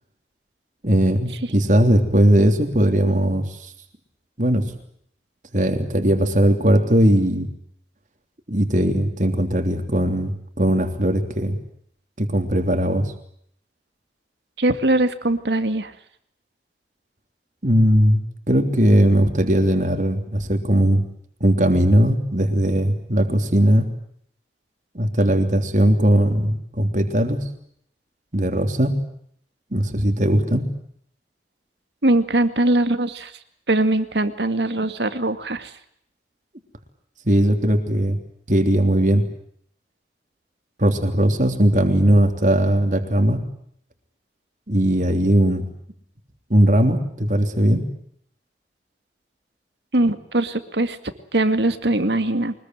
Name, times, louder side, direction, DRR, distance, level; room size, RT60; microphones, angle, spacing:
voice 1, 0.8-3.7 4.4-4.6 5.5-7.5 8.5-11.6 12.2-13.1 17.6-18.2 18.5-21.0 21.4-23.9 24.9-27.4 28.3-28.9 29.7-30.6 37.2-38.2 38.5-39.2 40.8-43.4 44.7-45.6 46.5-47.8, right 1 dB, 45° right, 6 dB, 3.3 m, -19 dB
voice 2, 14.6-15.9 32.0-33.3 33.7-35.7 49.9-51.0 51.3-52.5, right 1 dB, 75° right, 10 dB, 2.2 m, -21 dB
24.5 x 21.0 x 9.3 m, 0.67 s
head